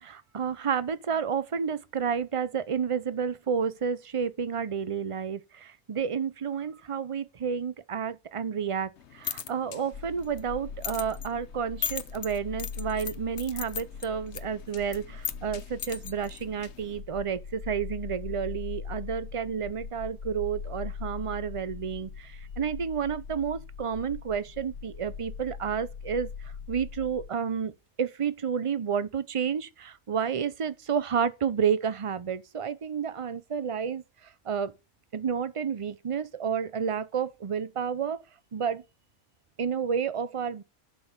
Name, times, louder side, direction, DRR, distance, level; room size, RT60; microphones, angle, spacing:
voice 1, 0.0-27.7 28.0-34.7 35.1-38.2 38.5-38.8 39.6-40.6, right 7 dB, 50° right, 0.3 m, -30 dB
sound 1, 9.0-17.0, left 8 dB, 55° left, 0.9 m, -40 dB
sound 2, 9.9-27.3, left 6 dB, 75° left, 2.0 m, -41 dB
11.5 x 5.6 x 7.3 m
omnidirectional pair, 1.5 m